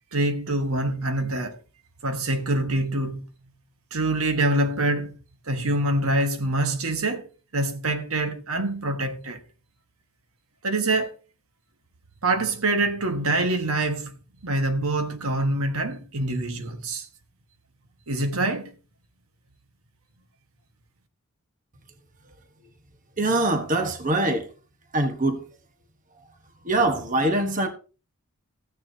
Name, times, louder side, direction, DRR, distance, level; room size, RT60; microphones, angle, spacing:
voice 1, 0.1-1.6 2.0-3.3 3.9-5.1 5.5-9.4 10.6-11.1 12.2-14.1 14.4-17.1 18.1-18.7, right 2 dB, 75° right, 1.4 m, -25 dB
voice 2, 23.2-24.5 24.9-25.5 26.6-27.7, right 2 dB, 35° right, 1.1 m, -23 dB
14.5 x 9.6 x 2.7 m
head